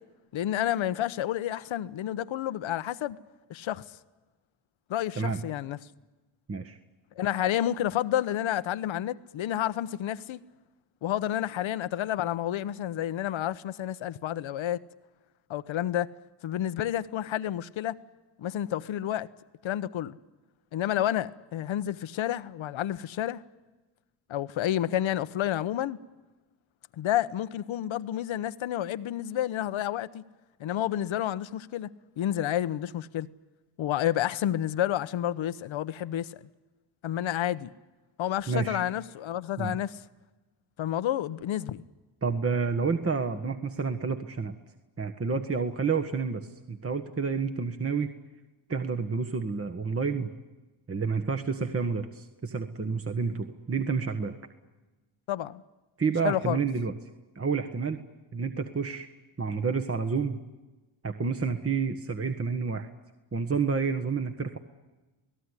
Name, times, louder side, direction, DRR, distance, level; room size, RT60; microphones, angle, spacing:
voice 1, 0.3-3.2 3.5-3.8 4.9-5.8 7.2-10.4 11.0-14.8 15.5-16.1 16.4-18.0 18.4-19.3 19.6-20.2 20.7-23.4 24.3-26.0 27.0-30.2 30.6-31.9 32.2-33.3 33.8-36.4 37.0-37.7 38.2-40.0 40.8-41.8 55.3-55.6 56.2-56.6, left 12 dB, 65° left, 1.0 m, -30 dB
voice 2, 38.5-38.8 39.6-39.8 42.2-44.5 45.0-48.1 48.7-50.3 50.9-54.3 56.0-56.9 57.3-58.0 58.3-59.1 59.4-60.4 61.0-62.9 63.3-64.6, right 5 dB, 25° right, 1.5 m, -29 dB
28.0 x 18.0 x 9.9 m
supercardioid pair, 55°, 50 cm